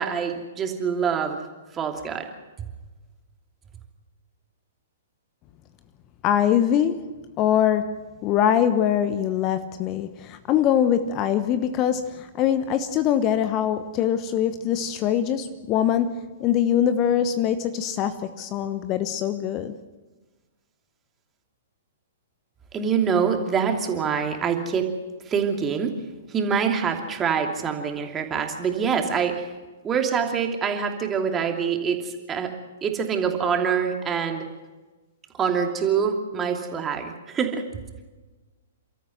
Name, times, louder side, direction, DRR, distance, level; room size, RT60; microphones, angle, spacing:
voice 1, 0.0-1.4 1.7-2.3 2.6-2.7 22.7-24.9 25.3-25.9 26.3-29.5 29.8-32.5 32.8-34.4 35.3-37.6, right 6 dB, 20° right, 4 dB, 2.8 m, -25 dB
voice 2, 6.2-7.1 7.4-7.9 8.2-19.7, left 9 dB, 30° left, 12 dB, 1.1 m, -23 dB
29.5 x 13.5 x 8.0 m, 1.2 s
figure-of-eight pair, 115°, 0 cm